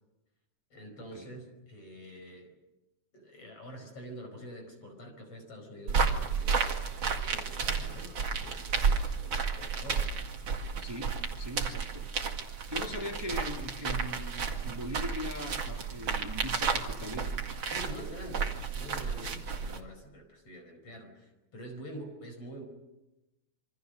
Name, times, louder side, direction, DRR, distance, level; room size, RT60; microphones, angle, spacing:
voice 1, 0.7-2.5 3.1-6.9 7.3-10.1 12.6-12.7 17.7-22.6, equal, 50° left, 5 dB, 5.9 m, -46 dB
sound 1, 5.9-19.8, right 5 dB, 45° right, 2.7 m, -32 dB
voice 2, 10.8-12.1 12.7-17.4, left 1 dB, 10° right, 2 dB, 2.4 m, -40 dB
27.5 x 25.0 x 6.6 m, 0.98 s
omnidirectional pair, 3.3 m